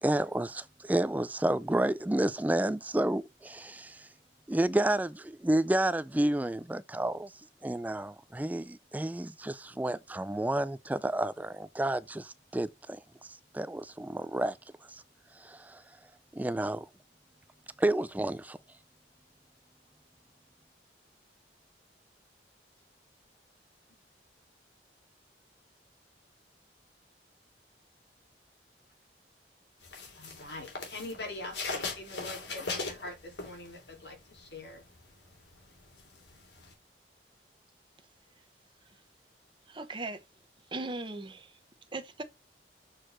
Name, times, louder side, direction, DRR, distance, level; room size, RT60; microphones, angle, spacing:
voice 1, 0.0-4.1 4.5-7.3 7.6-14.6 14.9-15.0 15.4-15.8 16.3-16.9 17.8-18.6, right 1 dB, 10° right, 0.3 m, -30 dB
sound 1, 29.8-34.0 34.4-36.7, left 3 dB, 85° left, 2.9 m, -39 dB
voice 2, 30.1-34.8, left 2 dB, 70° left, 3.6 m, -43 dB
voice 3, 39.7-40.2 40.7-41.5 41.9-42.2, right 2 dB, 30° right, 1.0 m, -38 dB
6.5 x 4.5 x 5.9 m
head